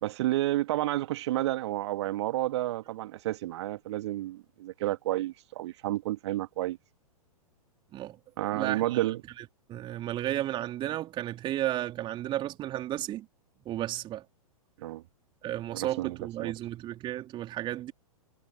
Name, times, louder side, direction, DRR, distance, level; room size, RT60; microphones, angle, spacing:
voice 1, 0.0-6.8 8.4-9.2 14.8-15.0 15.7-16.5, right 15 dB, 50° right, 1.9 m, -31 dB
voice 2, 8.5-9.1 9.4-9.5 9.7-13.3 13.7-14.2 15.4-17.9, right 13 dB, 25° right, 3.3 m, -33 dB
figure-of-eight pair, 105°, 19 cm